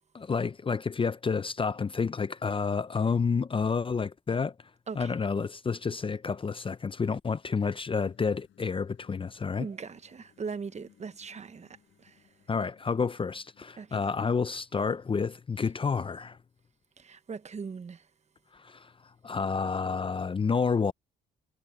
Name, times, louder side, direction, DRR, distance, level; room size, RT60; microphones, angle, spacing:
voice 1, 0.1-4.5 5.0-9.7 12.5-16.4 18.6-18.9 19.2-20.9, left 5 dB, 25° left, 0.6 m, -29 dB
sound 1, 8.0-14.6, left 10 dB, 70° left, 5.3 m, -64 dB
voice 2, 9.6-12.2 13.8-14.1 17.0-18.0, right 5 dB, 35° right, 1.0 m, -40 dB
cardioid pair, 90°, 20 cm